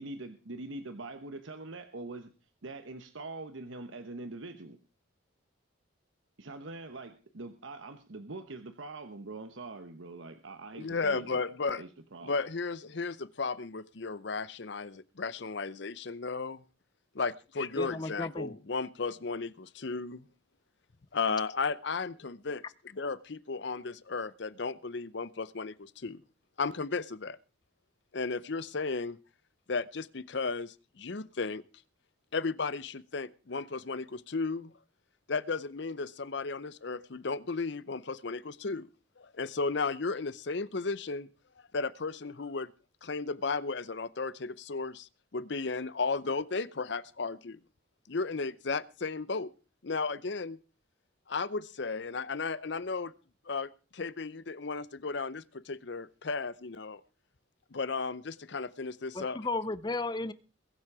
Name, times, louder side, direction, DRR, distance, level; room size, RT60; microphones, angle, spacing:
voice 1, 0.0-2.3 2.6-4.8 6.4-11.4 11.8-12.3, right 2 dB, 70° right, 1.1 m, -43 dB
voice 2, 10.7-11.8 12.2-16.6 17.1-20.2 21.1-22.6 22.9-26.2 26.6-27.4 28.1-29.2 29.7-31.6 32.3-34.7 35.3-38.9 39.2-41.3 41.7-42.7 43.0-47.6 48.1-49.5 49.8-50.6 51.3-53.1 53.5-57.0 57.7-59.4, left 4 dB, 55° left, 0.7 m, -34 dB
voice 3, 17.8-18.6 59.1-60.3, left 2 dB, 20° left, 0.6 m, -34 dB
22.0 x 7.6 x 4.8 m
head